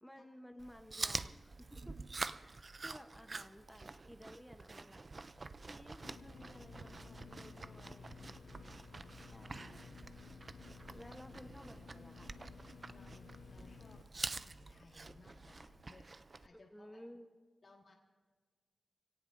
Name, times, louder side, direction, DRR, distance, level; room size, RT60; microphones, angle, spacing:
voice 1, 0.0-2.0 2.3-5.1 5.7-8.5 9.3-9.7 10.9-12.4 16.5-17.3, equal, 5° left, 6 dB, 0.9 m, -56 dB
Chewing mastication, 0.6-16.5, right 3 dB, 40° right, 0.4 m, -47 dB
sound 1, 5.1-15.9, right 2 dB, 85° right, 5.0 m, -62 dB
sound 2, 6.0-14.0, left 6 dB, 85° left, 0.4 m, -55 dB
voice 2, 12.9-14.0 14.3-16.1 16.4-17.0 17.6-17.9, left 3 dB, 55° left, -1 dB, 1.8 m, -62 dB
26.0 x 17.5 x 2.6 m, 1.5 s
wide cardioid pair, 120°, 0 cm